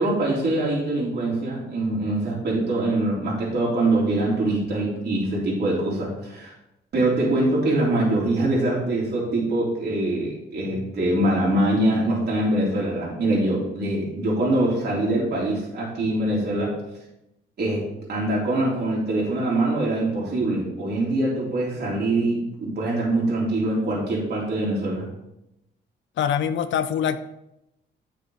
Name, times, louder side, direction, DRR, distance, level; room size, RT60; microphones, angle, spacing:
voice 1, 0.0-6.5 6.9-16.7 17.6-17.8 18.1-25.1, right 1 dB, 55° right, -5 dB, 3.4 m, -23 dB
voice 2, 26.2-27.2, left 8 dB, 70° left, 12 dB, 0.7 m, -24 dB
9.9 x 6.8 x 4.0 m, 0.87 s
cardioid pair, 90°, 20 cm